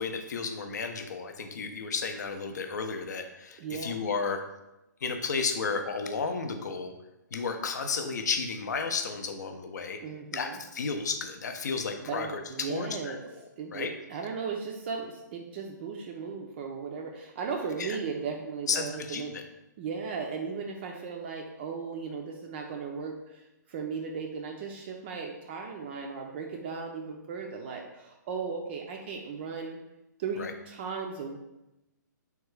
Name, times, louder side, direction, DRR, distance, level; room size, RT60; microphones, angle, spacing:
voice 1, 0.0-4.4 5.0-7.0 7.3-10.0 10.3-13.4 13.7-13.9 17.8-18.0 18.7-19.4 30.4-30.5, left 5 dB, 65° left, 6 dB, 0.5 m, -33 dB
voice 2, 3.6-4.0 10.0-10.6 12.0-13.2 13.6-19.3 19.8-29.8 30.2-31.4, right 5 dB, 35° right, 1 dB, 0.3 m, -36 dB
3.5 x 2.3 x 3.1 m, 0.94 s
hypercardioid pair, 135°, 10 cm